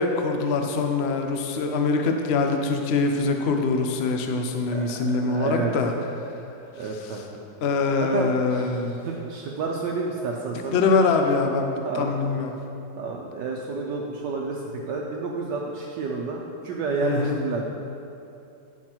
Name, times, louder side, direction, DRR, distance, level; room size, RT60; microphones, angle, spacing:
voice 1, 0.0-5.9 7.6-9.0 10.7-12.5 17.0-17.4, left 4 dB, 85° left, 4 dB, 0.5 m, -23 dB
voice 2, 5.2-5.7 6.7-7.4 8.0-10.8 11.8-12.2 13.0-17.7, right 4 dB, 75° right, -1 dB, 1.3 m, -30 dB
9.3 x 6.0 x 4.4 m, 2.7 s
omnidirectional pair, 2.0 m